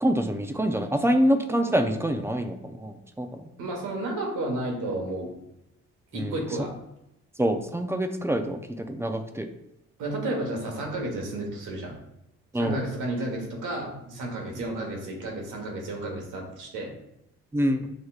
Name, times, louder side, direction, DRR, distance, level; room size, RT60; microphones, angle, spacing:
voice 1, 0.0-3.4 6.1-6.4 7.4-9.5 12.5-12.8 17.5-17.9, equal, 10° right, 7 dB, 0.4 m, -26 dB
voice 2, 3.6-5.3 6.1-6.7 10.0-11.9 12.5-17.0, right 1 dB, 85° right, 0 dB, 1.3 m, -32 dB
6.5 x 3.0 x 2.4 m, 0.83 s
cardioid pair, 90°, 30 cm